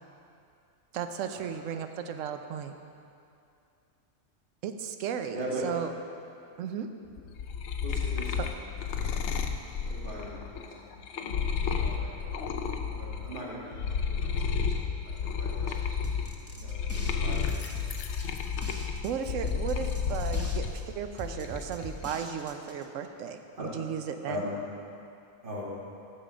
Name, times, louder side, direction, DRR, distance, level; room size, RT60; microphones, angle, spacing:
voice 1, 0.9-2.7 4.6-5.4 5.6-5.9 6.6-6.9 8.4-8.5 18.8-24.5, right 8 dB, 80° right, 7 dB, 0.9 m, -35 dB
voice 2, 5.3-5.6 7.8-8.5 8.9-9.2 9.8-10.9 11.1-12.6 12.9-17.6 23.6-23.7 24.2-24.5 25.4-25.6, equal, 40° right, -5 dB, 1.8 m, -41 dB
sound 1, 7.2-13.4 13.7-20.7 21.1-21.8, left 6 dB, 70° left, 0.9 m, -31 dB
sound 2, 16.0-22.8, equal, 20° right, 0.4 m, -43 dB
8.8 x 6.8 x 5.0 m, 2.5 s
omnidirectional pair, 1.3 m